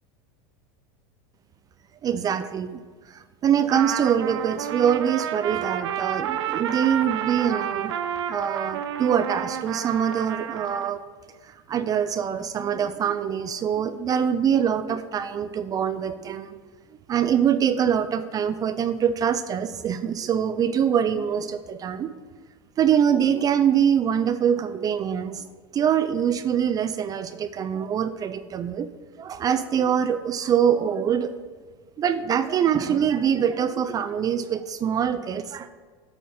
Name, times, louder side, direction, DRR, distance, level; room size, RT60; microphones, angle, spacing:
voice 1, 2.0-2.8 3.1-7.9 8.3-11.0 11.7-16.6 17.1-22.1 22.8-25.5 25.7-28.9 29.2-31.3 32.0-35.7, right 8 dB, 25° right, 11 dB, 0.4 m, -24 dB
Trumpet, 3.7-10.9, right 9 dB, 85° right, 0.6 m, -30 dB
8.3 x 4.3 x 5.9 m, 1.5 s
supercardioid pair, 125°, 14 cm